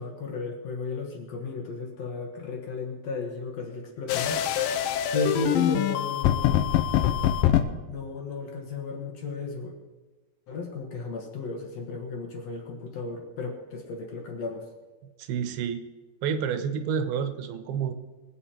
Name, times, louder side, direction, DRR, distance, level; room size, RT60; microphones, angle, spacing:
voice 1, 0.0-4.5 5.1-6.8 7.9-9.7 10.5-14.6, left 4 dB, 55° left, 1 dB, 2.1 m, -34 dB
sound 1, 4.1-7.6, left 11 dB, 80° left, 2.3 m, -24 dB
voice 2, 15.2-15.8 16.2-17.9, right 7 dB, 90° right, 9 dB, 2.9 m, -29 dB
21.5 x 8.1 x 4.4 m, 1.2 s
omnidirectional pair, 4.3 m